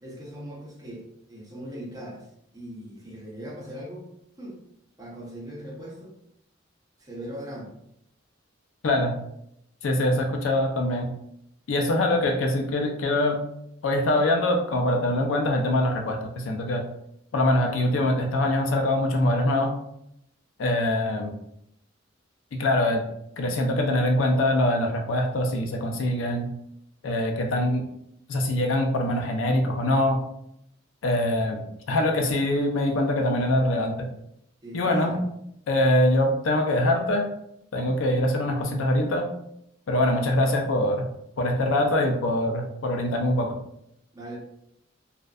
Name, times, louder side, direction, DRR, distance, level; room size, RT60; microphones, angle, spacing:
voice 1, 0.0-2.3 2.5-4.1 4.4-4.6 5.0-6.1 7.0-7.8 34.6-35.2 44.1-44.4, equal, 20° right, -3 dB, 0.6 m, -39 dB
voice 2, 8.8-9.1 9.8-11.1 11.7-13.4 13.8-16.8 17.3-19.7 20.6-21.3 22.5-23.0 23.4-26.5 27.0-27.8 28.3-30.2 31.0-34.1 34.7-35.2 35.7-37.3 37.7-39.3 39.9-41.0 41.4-43.5, left 1 dB, 80° left, 3 dB, 0.4 m, -23 dB
2.6 x 2.1 x 2.3 m, 0.78 s
head